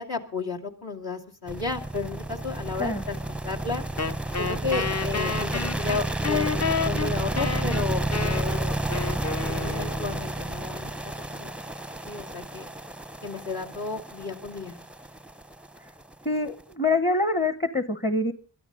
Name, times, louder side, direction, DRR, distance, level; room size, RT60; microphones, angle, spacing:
voice 1, 0.0-3.8 4.4-8.8 9.5-11.6 12.0-12.7 13.2-14.8, left 4 dB, 65° left, -1 dB, 2.6 m, -33 dB
sound 1, 1.5-16.6, right 2 dB, 5° right, 0.6 m, -31 dB
Wind instrument woodwind instrument, 4.0-10.3, left 5 dB, 40° left, 0.8 m, -30 dB
voice 2, 16.2-18.3, left 2 dB, 25° left, 11 dB, 1.1 m, -25 dB
22.0 x 13.0 x 3.9 m, 0.39 s
cardioid pair, 45°, 41 cm